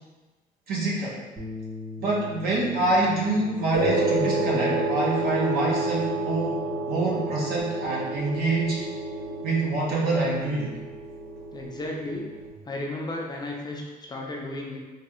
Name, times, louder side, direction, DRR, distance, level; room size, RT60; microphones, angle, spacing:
voice 1, 0.7-1.2 2.0-6.6 6.9-8.8 9.4-10.8, right 2 dB, 65° right, -4 dB, 0.9 m, -26 dB
Bass guitar, 1.4-7.6, left 3 dB, 20° right, 0.8 m, -42 dB
sound 1, 3.7-12.5, right 2 dB, 35° right, 1.3 m, -29 dB
voice 2, 9.3-9.6 11.5-12.3 12.6-14.8, left 2 dB, 25° left, -1 dB, 0.5 m, -34 dB
3.2 x 2.2 x 2.9 m, 1.2 s
cardioid pair, 110°, 17 cm